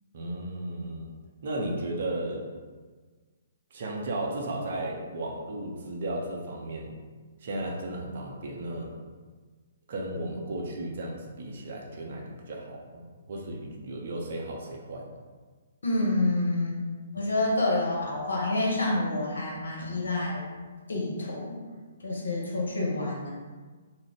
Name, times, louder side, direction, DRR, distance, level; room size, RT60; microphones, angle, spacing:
voice 1, 0.1-1.1 1.4-2.4 3.7-6.9 7.4-9.0 9.9-15.1, right 1 dB, 55° right, -1 dB, 0.5 m, -34 dB
voice 2, 15.8-16.8 17.1-20.4 20.9-21.6 22.0-23.3, left 2 dB, 70° left, -3 dB, 0.8 m, -28 dB
2.4 x 2.0 x 3.4 m, 1.4 s
figure-of-eight pair, 130°, 0 cm